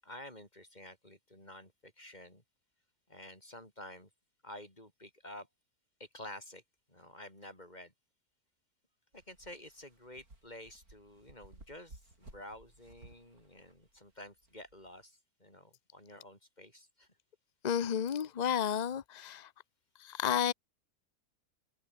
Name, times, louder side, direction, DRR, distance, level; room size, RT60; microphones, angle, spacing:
voice 1, 0.0-2.4 3.1-4.1 4.4-5.5 6.0-6.6 6.9-7.9 9.1-17.1, left 1 dB, 25° left, 6.9 m, -50 dB
sound 1, 9.1-15.0, right 2 dB, 65° right, 6.4 m, -58 dB
voice 2, 17.6-19.5 20.0-20.5, left 8 dB, 60° left, 0.4 m, -32 dB
omnidirectional pair, 1.7 m